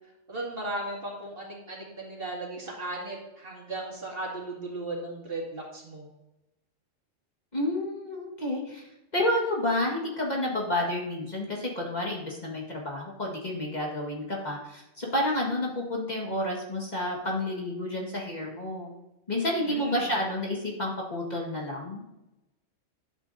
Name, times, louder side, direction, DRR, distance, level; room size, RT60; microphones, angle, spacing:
voice 1, 0.3-6.1 19.6-20.1, right 2 dB, 45° right, -3 dB, 2.5 m, -36 dB
voice 2, 7.5-8.8 9.1-18.9 19.3-22.0, left 1 dB, 35° left, -2 dB, 1.8 m, -30 dB
12.0 x 8.2 x 2.7 m, 0.93 s
omnidirectional pair, 1.3 m